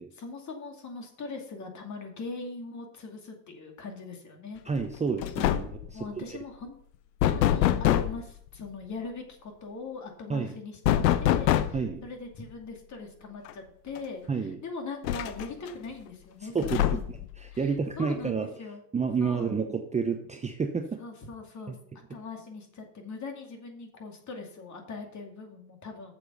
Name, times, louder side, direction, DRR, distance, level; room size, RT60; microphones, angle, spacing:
voice 1, 0.1-4.6 5.9-6.8 7.2-17.0 17.5-17.7 18.0-18.8 19.2-19.6 21.0-21.8 22.1-26.1, left 4 dB, 35° left, 3 dB, 2.5 m, -41 dB
voice 2, 4.7-6.1 10.3-10.6 11.7-12.0 14.3-14.6 16.5-16.8 17.6-18.5 18.9-21.0 21.7-21.8, right 5 dB, 15° right, 5 dB, 0.7 m, -29 dB
sound 1, 4.8-5.0 5.2-5.9 7.2-8.2 10.8-11.9 13.5-13.6 14.0-14.1 15.0-15.7 16.6-17.3, left 12 dB, 75° left, 0.8 m, -24 dB
7.8 x 7.2 x 5.6 m, 0.68 s
hypercardioid pair, 90°, 49 cm